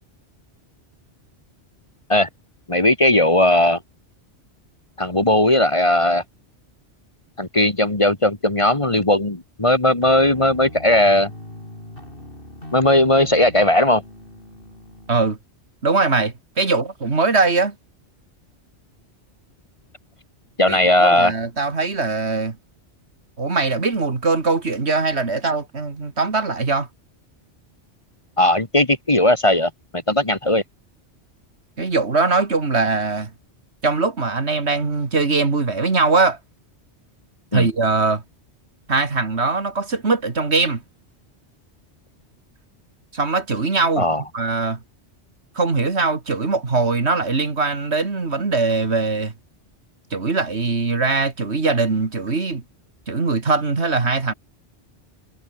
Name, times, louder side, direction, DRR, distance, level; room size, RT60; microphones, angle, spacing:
voice 1, 2.7-3.8 5.0-6.2 7.4-11.3 12.7-14.0 20.6-21.3 28.4-29.7 30.1-30.6 37.5-37.7 44.0-44.2, left 1 dB, 25° left, 1.9 m, -17 dB
sound 1, 10.0-15.2, left 1 dB, 50° left, 7.2 m, -39 dB
voice 2, 15.8-17.8 20.7-22.6 23.4-26.9 31.8-33.3 33.8-36.4 37.5-38.2 38.9-40.8 43.1-44.1 44.3-44.8 45.6-49.3 50.1-52.6 53.1-54.3, right 3 dB, 70° right, 2.6 m, -21 dB
omnidirectional pair, 1.2 m